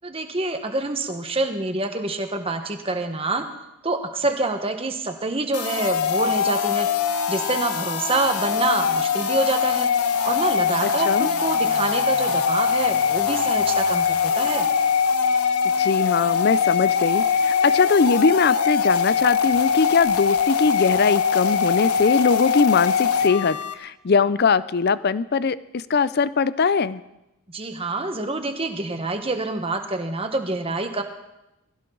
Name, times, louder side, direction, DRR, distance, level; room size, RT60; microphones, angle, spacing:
voice 1, 0.0-3.4 3.8-6.9 7.3-9.9 10.2-14.7 27.5-31.0, right 2 dB, 25° right, 6 dB, 1.3 m, -26 dB
sound 1, 5.5-23.7, left 6 dB, 85° left, 1.1 m, -22 dB
voice 2, 10.8-11.3 15.8-27.0, left 5 dB, 45° left, 17 dB, 0.5 m, -21 dB
20.5 x 16.0 x 3.9 m, 0.92 s
head